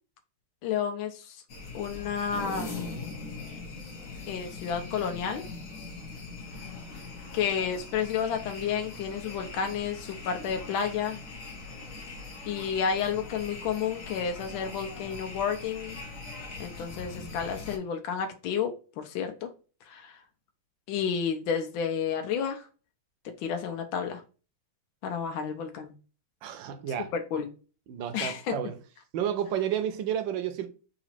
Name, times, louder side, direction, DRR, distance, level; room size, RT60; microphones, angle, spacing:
voice 1, 0.6-1.4 1.7-2.8 4.3-5.4 7.3-11.2 12.5-16.0 16.6-19.5 19.9-20.2 20.9-22.6 23.4-24.2 25.0-25.9 27.1-27.5 28.1-28.5, left 7 dB, 75° left, 1.4 m, -31 dB
sound 1, 1.5-17.8, left 3 dB, 50° left, 1.2 m, -41 dB
voice 2, 26.4-27.1 27.9-28.8 29.1-30.7, right 9 dB, 75° right, 1.3 m, -31 dB
4.0 x 2.9 x 4.2 m
omnidirectional pair, 2.2 m